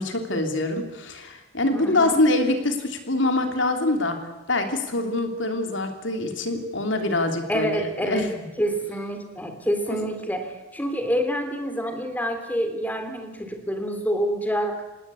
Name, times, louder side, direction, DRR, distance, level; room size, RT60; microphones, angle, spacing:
voice 1, 0.0-4.2 4.5-8.3 9.4-9.5 9.9-10.0, left 2 dB, 65° left, 5 dB, 3.2 m, -24 dB
voice 2, 1.7-2.2 7.5-8.3 8.6-14.8, equal, 10° left, 6 dB, 3.1 m, -27 dB
27.0 x 19.0 x 8.5 m, 1.1 s
head